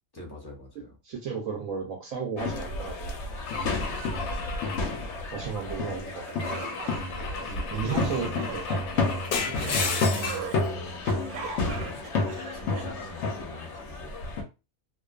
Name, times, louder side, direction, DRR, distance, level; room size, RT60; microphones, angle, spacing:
voice 1, 0.1-1.0 3.6-4.2 7.4-8.1 9.3-10.2 10.7-11.0 11.7-12.1 12.5-14.1, right 1 dB, 25° left, -3 dB, 0.5 m, -43 dB
voice 2, 1.0-3.2 3.5-3.6 4.7-5.0 5.3-6.3 7.4-8.7, right 6 dB, 70° right, 0 dB, 0.9 m, -34 dB
sound 1, 2.4-14.4, left 3 dB, 60° left, 0.8 m, -31 dB
Car / Engine / Glass, 3.5-5.7 6.4-10.6, left 5 dB, 85° left, 1.1 m, -34 dB
sound 2, 6.3-13.4, right 5 dB, 90° right, 1.1 m, -40 dB
2.4 x 2.3 x 2.3 m, 0.28 s
omnidirectional pair, 1.6 m